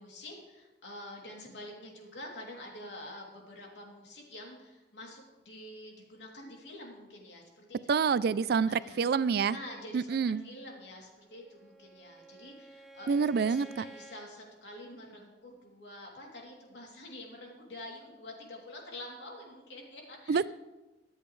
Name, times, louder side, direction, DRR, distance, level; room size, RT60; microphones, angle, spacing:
voice 1, 0.0-7.8 8.7-9.2 9.5-20.5, left 1 dB, 85° left, -1 dB, 3.0 m, -47 dB
voice 2, 7.9-9.6 9.9-10.4 13.1-13.8 20.3-20.5, right 5 dB, 60° right, 18 dB, 0.4 m, -27 dB
Bowed string instrument, 11.1-14.3, right 3 dB, ahead, 1.1 m, -52 dB
23.0 x 8.2 x 3.2 m, 1.1 s
head